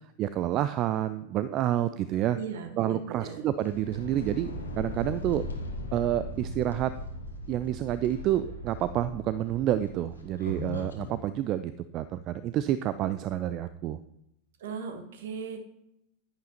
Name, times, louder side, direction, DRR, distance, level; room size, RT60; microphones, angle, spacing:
voice 1, 0.2-2.4 2.8-5.4 5.9-6.9 7.5-14.0, right 12 dB, 35° right, 14 dB, 0.4 m, -29 dB
voice 2, 2.3-3.5 14.6-15.6, right 6 dB, 55° right, 7 dB, 1.3 m, -38 dB
sound 1, 3.6-11.2, left 1 dB, 75° left, 1.4 m, -38 dB
10.5 x 9.9 x 2.9 m, 0.80 s
figure-of-eight pair, 90°, 0 cm